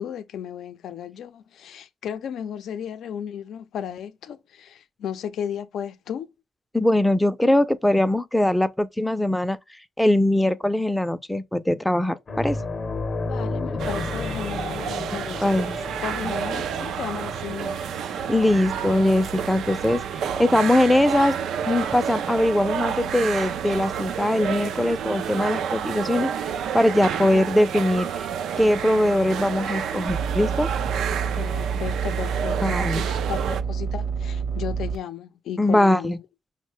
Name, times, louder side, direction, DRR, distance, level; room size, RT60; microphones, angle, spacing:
voice 1, 0.0-6.3 13.2-17.8 31.4-36.2, left 8 dB, 80° left, 0.4 m, -34 dB
voice 2, 6.7-9.6 10.0-12.6 15.4-15.8 18.3-20.0 20.4-21.3 21.7-26.3 26.7-28.3 28.6-30.7 32.6-33.0 35.6-36.2, left 1 dB, 5° left, 0.4 m, -21 dB
sound 1, 12.3-21.2 21.5-21.7 23.8-23.9, left 3 dB, 45° left, 0.7 m, -33 dB
sound 2, 13.8-33.6, right 8 dB, 85° right, 0.4 m, -30 dB
sound 3, 30.1-35.0, right 6 dB, 60° right, 0.8 m, -28 dB
5.2 x 2.1 x 3.0 m
cardioid pair, 95°, 0 cm